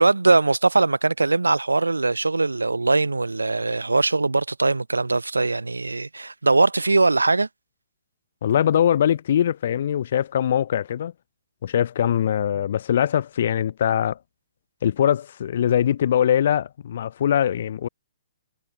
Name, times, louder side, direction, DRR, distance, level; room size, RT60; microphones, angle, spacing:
voice 1, 0.0-7.5, right 3 dB, 85° right, 7.1 m, -21 dB
voice 2, 8.4-11.1 11.6-14.2 14.8-17.9, left 9 dB, 55° left, 5.1 m, -22 dB
figure-of-eight pair, 125°, 0 cm